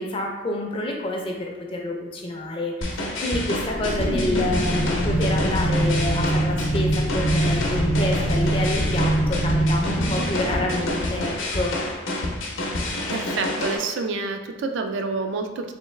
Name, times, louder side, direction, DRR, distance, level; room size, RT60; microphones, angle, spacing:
voice 1, 0.0-11.7, left 1 dB, 25° left, 1 dB, 0.4 m, -28 dB
sound 1, 2.8-13.8, left 1 dB, 80° left, 0.7 m, -28 dB
sound 2, 3.5-11.8, right 1 dB, 90° right, 1.0 m, -24 dB
voice 2, 13.1-15.7, right 4 dB, 70° right, 5 dB, 0.3 m, -28 dB
3.3 x 3.1 x 3.1 m, 1.2 s
head